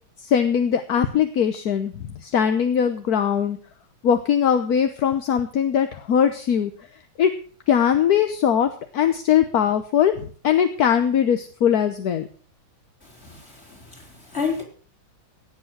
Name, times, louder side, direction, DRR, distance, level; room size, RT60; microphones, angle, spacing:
voice 1, 0.2-1.9 2.2-3.6 4.0-6.7 7.2-7.3 7.7-10.1 10.4-12.3, left 8 dB, 55° left, 1.3 m, -20 dB
voice 2, 13.0-14.6, left 5 dB, 30° left, 4.2 m, -31 dB
17.0 x 8.4 x 6.1 m
omnidirectional pair, 2.2 m